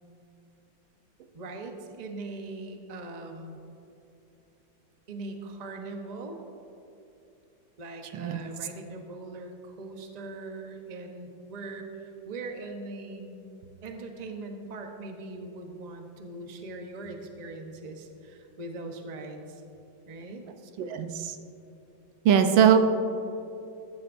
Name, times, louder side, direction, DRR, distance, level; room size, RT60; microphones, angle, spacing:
voice 1, 1.3-3.6 5.1-6.4 7.8-13.5 13.8-19.6 20.1-20.4, right 2 dB, 35° right, 3 dB, 0.7 m, -40 dB
voice 2, 20.8-21.4 22.2-22.8, right 8 dB, 85° right, 7 dB, 1.5 m, -21 dB
14.0 x 14.0 x 2.6 m, 2.8 s
omnidirectional pair, 2.0 m